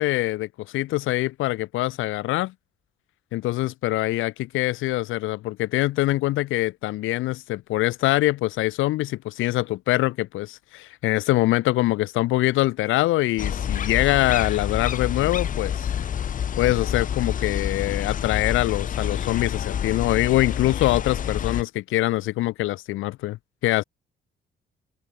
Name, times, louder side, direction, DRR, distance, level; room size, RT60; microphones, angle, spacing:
voice 1, 0.0-2.5 3.3-15.9 16.6-23.4 23.6-23.8, left 17 dB, 90° left, 0.8 m, -24 dB
sound 1, 13.4-21.6, left 8 dB, 40° left, 0.6 m, -28 dB
open air
cardioid pair, 90°, 20 cm